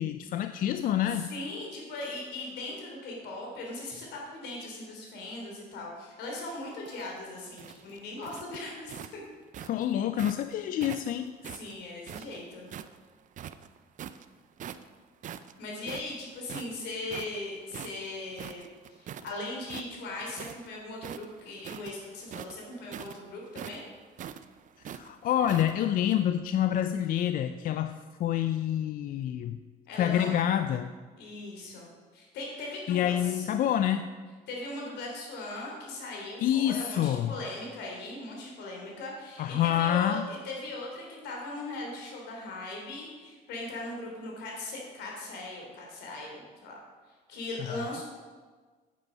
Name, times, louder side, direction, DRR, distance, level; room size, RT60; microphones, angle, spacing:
voice 1, 0.0-1.3 9.6-11.4 24.9-29.6 30.0-30.9 32.9-34.1 36.4-37.3 39.4-40.3, left 10 dB, 55° left, 10 dB, 0.4 m, -27 dB
voice 2, 1.1-9.2 11.4-12.7 15.6-23.9 29.9-30.3 31.2-33.5 34.5-46.7 47.3-48.0, left 2 dB, 80° left, -1 dB, 3.3 m, -39 dB
sound 1, 6.7-10.4 10.8-13.0 13.3-14.2 14.6-14.9 15.2-19.3 19.6-20.7 21.0-25.7, right 9 dB, 50° right, 0.5 m, -43 dB
9.1 x 8.4 x 5.3 m, 1.4 s
cardioid pair, 110°, 17 cm